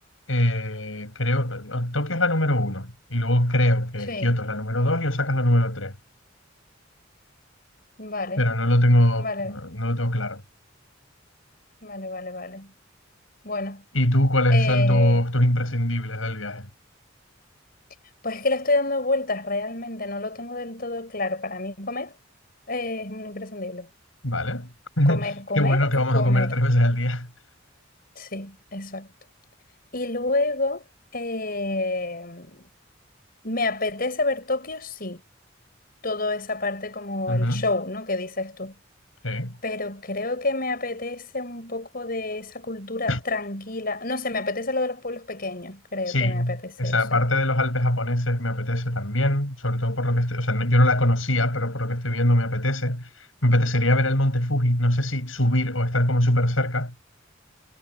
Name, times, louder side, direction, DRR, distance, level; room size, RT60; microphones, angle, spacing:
voice 1, 0.3-5.9 8.4-10.4 13.9-16.7 24.2-24.7 25.0-25.3 25.5-27.3 37.3-37.6 39.2-39.5 43.1-43.2 46.1-53.1 53.4-56.9, left 1 dB, 90° left, 7.9 m, -22 dB
voice 2, 8.0-8.5 9.2-9.6 11.8-12.7 13.4-13.8 14.5-15.2 18.2-22.1 22.7-23.9 25.0-26.6 28.1-29.1 29.9-32.7 33.4-35.2 36.0-38.7 39.6-47.2, left 2 dB, 50° left, 6.5 m, -29 dB
head